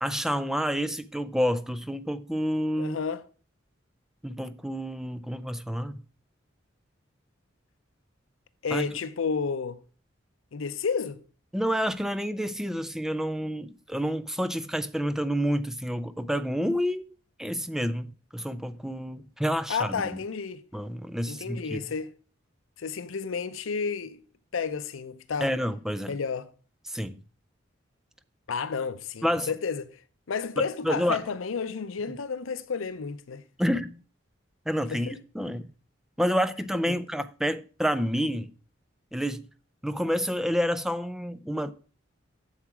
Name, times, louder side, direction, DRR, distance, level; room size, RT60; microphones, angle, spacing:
voice 1, 0.0-3.0 4.2-5.9 8.7-8.9 11.5-17.0 17.4-20.2 20.7-21.8 25.4-26.1 26.9-27.2 29.2-29.5 30.6-31.2 33.6-34.0 34.7-35.7 36.2-38.5 39.1-39.5 39.8-41.7, equal, ahead, 0.4 m, -29 dB
voice 2, 2.8-3.2 8.6-9.8 10.5-11.2 19.7-20.6 21.3-22.1 22.8-24.2 24.5-25.5 26.1-26.5 28.5-30.0 30.3-33.4 34.9-35.2 36.9-37.0, left 5 dB, 85° left, 0.6 m, -31 dB
8.3 x 7.2 x 5.9 m
head